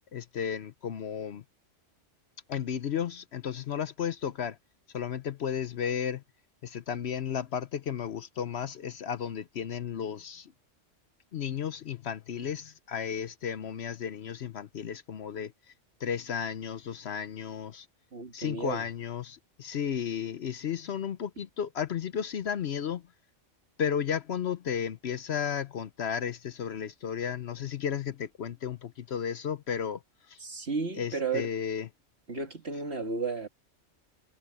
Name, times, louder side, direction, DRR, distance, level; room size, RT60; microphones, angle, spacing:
voice 1, 0.1-1.4 2.5-4.6 4.9-6.2 6.6-10.5 11.3-15.5 16.0-17.9 18.3-23.0 23.8-30.0 30.3-30.4 31.0-31.9, left 8 dB, 60° left, 0.9 m, -33 dB
voice 2, 18.1-18.8 30.4-31.5 32.3-33.5, right 4 dB, 55° right, 2.6 m, -33 dB
omnidirectional pair, 1.3 m